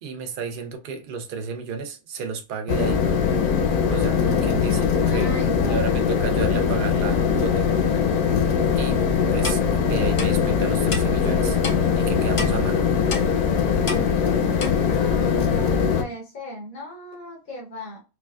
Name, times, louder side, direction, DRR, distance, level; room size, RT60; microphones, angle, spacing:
voice 1, 0.0-3.0 3.9-5.3 5.7-8.0 8.8-9.0 9.3-11.6 11.9-12.8, right 5 dB, 60° right, 0.5 m, -32 dB
sound 1, 2.7-16.0, left 6 dB, 90° left, 1.1 m, -21 dB
voice 2, 5.0-5.9 14.6-18.0, equal, 70° left, 1.4 m, -36 dB
Clock, 9.4-9.6 10.2-10.3 10.9-11.0 11.6-11.8 12.4-12.5 13.1-13.3 13.9-14.0 14.6-14.7, left 3 dB, 45° left, 0.4 m, -29 dB
4.6 x 2.2 x 2.2 m
omnidirectional pair, 1.5 m